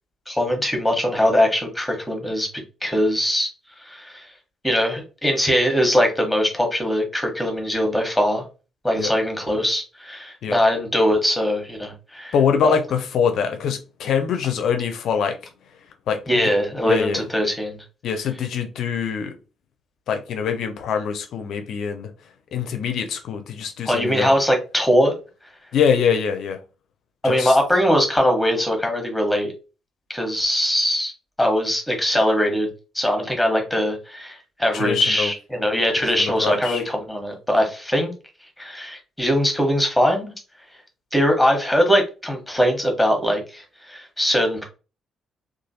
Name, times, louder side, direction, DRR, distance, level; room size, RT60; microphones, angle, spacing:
voice 1, 0.3-2.5 2.8-3.5 3.8-4.3 4.6-8.4 8.8-12.3 16.3-17.8 23.9-25.2 27.2-29.5 30.1-31.1 31.4-32.7 32.9-38.1 38.6-40.3 41.1-44.6, equal, 5° left, 1.0 m, -21 dB
voice 2, 12.3-15.4 16.1-16.4 16.8-17.2 18.0-19.4 20.1-22.1 22.5-24.3 25.7-26.6 27.2-27.6 34.7-35.3 36.2-36.8, left 7 dB, 55° left, 0.4 m, -23 dB
3.1 x 2.3 x 2.7 m
figure-of-eight pair, 40°, 0 cm